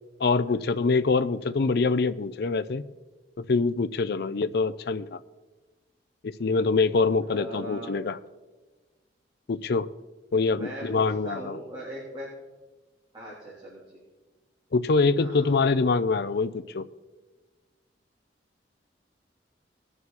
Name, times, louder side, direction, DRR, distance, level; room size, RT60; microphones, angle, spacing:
voice 1, 0.2-2.8 3.4-5.2 6.2-8.2 9.5-9.9 10.3-11.6 14.7-16.9, left 4 dB, 60° left, 12 dB, 0.5 m, -24 dB
voice 2, 7.3-7.9 10.5-12.3 13.1-14.0 15.2-15.7, equal, 25° right, -9 dB, 3.5 m, -40 dB
20.5 x 7.2 x 4.2 m, 1.2 s
head